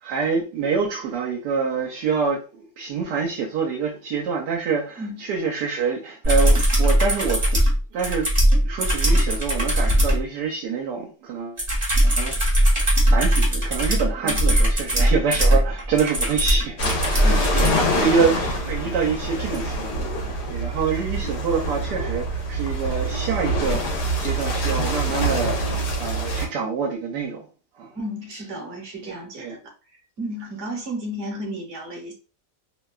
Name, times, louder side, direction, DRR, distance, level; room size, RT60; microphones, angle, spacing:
voice 1, 0.0-7.6 7.9-8.3 8.6-11.6 12.0-17.7 18.0-27.4 27.8-27.9 29.1-29.5, right 5 dB, 75° right, 1.2 m, -26 dB
sound 1, 6.2-10.2 11.6-17.8 19.5-19.6, equal, 25° right, 0.7 m, -19 dB
sound 2, 16.8-26.5, right 1 dB, 75° left, 1.3 m, -25 dB
voice 2, 17.2-18.0 27.9-29.7 30.2-32.1, equal, 50° right, 1.0 m, -33 dB
3.0 x 2.2 x 2.2 m
omnidirectional pair, 1.9 m